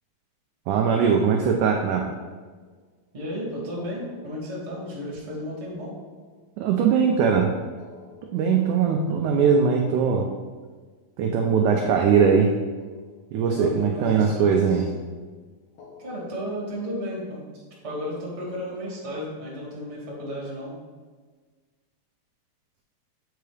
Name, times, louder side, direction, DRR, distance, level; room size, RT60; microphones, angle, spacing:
voice 1, 0.7-2.1 6.6-7.5 8.3-10.3 11.2-12.5 13.3-14.9, right 6 dB, 85° right, 1 dB, 1.8 m, -20 dB
sound 1, 1.8-3.0 3.7-7.0 7.6-10.9 11.6-13.5 13.8-14.8 15.7-17.5, left 4 dB, 65° left, 2.0 m, -53 dB
voice 2, 3.1-6.0 13.4-14.6 16.0-17.4 17.8-20.7, equal, 30° right, -5 dB, 1.4 m, -33 dB
7.9 x 4.6 x 3.3 m, 1.4 s
omnidirectional pair, 4.1 m